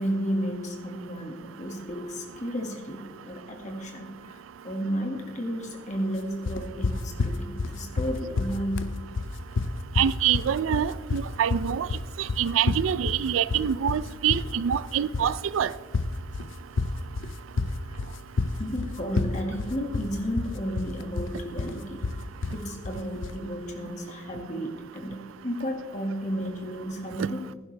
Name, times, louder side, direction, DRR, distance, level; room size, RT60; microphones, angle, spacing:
voice 1, 0.0-8.9 17.9-18.0 18.6-22.2 22.5-27.5, equal, 35° left, 1.8 m, -33 dB
sound 1, 6.5-23.4, left 3 dB, 75° left, 0.6 m, -29 dB
voice 2, 10.0-11.9 12.2-15.7 27.2-27.3, right 9 dB, 85° right, 0.4 m, -25 dB
15.5 x 11.5 x 3.3 m
head